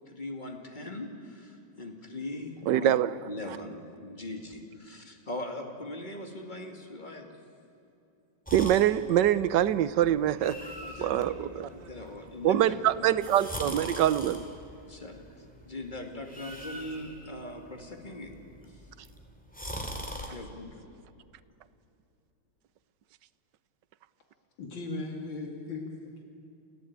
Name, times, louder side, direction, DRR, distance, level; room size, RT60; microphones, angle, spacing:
voice 1, 0.1-2.9 3.3-7.3 10.8-13.1 14.8-18.3 18.6-18.7 20.3-20.7, left 1 dB, 25° left, 3 dB, 2.6 m, -41 dB
voice 2, 2.7-3.2 8.5-10.7 11.0-11.7 12.4-14.4, right 11 dB, 70° right, 16 dB, 1.3 m, -24 dB
sound 1, 8.5-20.3, equal, 5° left, 2.8 m, -43 dB
voice 3, 24.6-26.2, left 3 dB, 75° left, 2 dB, 2.9 m, -37 dB
28.0 x 16.0 x 8.9 m, 2.7 s
omnidirectional pair, 2.1 m